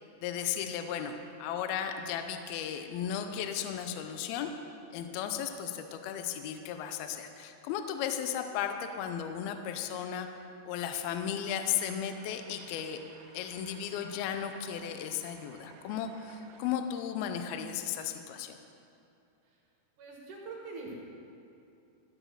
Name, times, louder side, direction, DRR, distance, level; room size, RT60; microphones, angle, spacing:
voice 1, 0.2-4.5 4.9-10.3 10.7-13.0 13.3-18.6, left 9 dB, 80° left, 7 dB, 2.3 m, -35 dB
sound 1, 11.5-16.7, right 6 dB, 80° right, 2.7 m, -56 dB
voice 2, 20.0-21.0, right 3 dB, 60° right, -2 dB, 2.4 m, -43 dB
13.0 x 7.5 x 6.5 m, 2.7 s
omnidirectional pair, 4.9 m